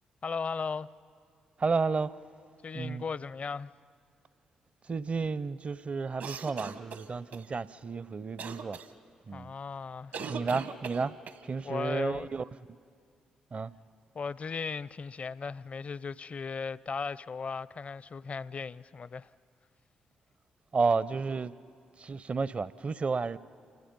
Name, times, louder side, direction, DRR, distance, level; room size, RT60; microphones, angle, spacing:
voice 1, 0.2-0.9 2.6-3.7 9.3-10.1 11.6-12.3 14.1-19.3, left 5 dB, 45° left, 0.5 m, -36 dB
voice 2, 1.6-2.1 2.7-3.0 4.9-8.8 9.3-9.5 10.3-11.1 11.4-12.5 13.5-13.7 20.7-21.5 22.0-23.4, right 4 dB, 40° right, 0.5 m, -31 dB
sound 1, 6.2-7.4 8.4-8.9 10.1-11.4, right 5 dB, 70° right, 1.2 m, -39 dB
28.5 x 27.0 x 5.3 m
hypercardioid pair, 45°, 3 cm